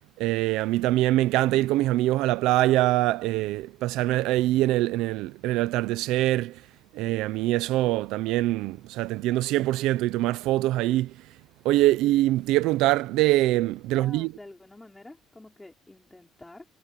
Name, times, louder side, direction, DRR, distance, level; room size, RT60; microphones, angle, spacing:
voice 1, 0.2-6.5 6.9-11.1 11.6-14.3, right 16 dB, 85° right, 0.7 m, -24 dB
voice 2, 13.9-16.7, left 2 dB, 10° left, 4.6 m, -48 dB
cardioid pair, 160°, 0 cm